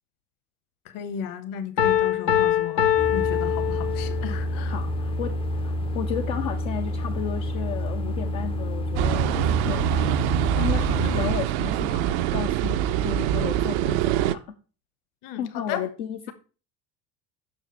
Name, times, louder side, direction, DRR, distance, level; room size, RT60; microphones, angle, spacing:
voice 1, 0.8-4.8 11.0-11.3 15.2-15.8, left 9 dB, 45° left, 1.2 m, -35 dB
Piano, 1.8-4.3, left 10 dB, 85° left, 0.9 m, -23 dB
sound 1, 3.0-11.3, left 1 dB, 10° left, 0.6 m, -29 dB
voice 2, 4.7-10.3 10.6-14.6 15.4-16.3, left 8 dB, 60° left, 0.9 m, -33 dB
sound 2, 9.0-14.4, right 12 dB, 45° right, 0.5 m, -24 dB
6.2 x 5.0 x 5.6 m
figure-of-eight pair, 70°, 48 cm